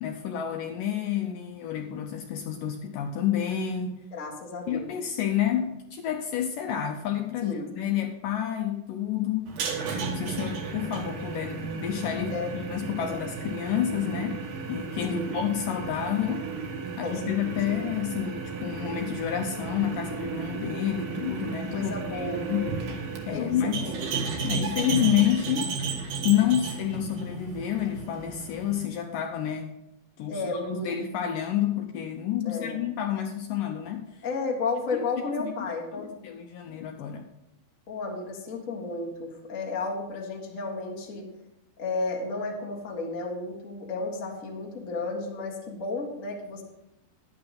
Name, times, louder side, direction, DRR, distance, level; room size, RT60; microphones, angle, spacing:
voice 1, 0.0-4.0 4.7-9.5 10.1-16.5 17.0-22.6 23.3-23.9 24.4-25.7 26.2-29.7 30.2-34.2 34.9-35.0 35.4-35.5 35.9-37.3, left 10 dB, 80° left, 3 dB, 2.0 m, -29 dB
voice 2, 4.1-5.2 7.4-7.7 12.1-12.5 13.0-13.2 15.0-15.4 17.0-17.6 21.7-22.6 23.3-23.5 23.8-24.0 30.3-31.0 32.4-32.9 34.2-36.1 37.9-41.3 41.8-46.6, left 3 dB, 45° left, -2 dB, 1.1 m, -33 dB
sound 1, 9.5-28.9, right 5 dB, 70° right, 2.9 m, -34 dB
11.0 x 8.7 x 4.2 m, 0.89 s
omnidirectional pair, 4.4 m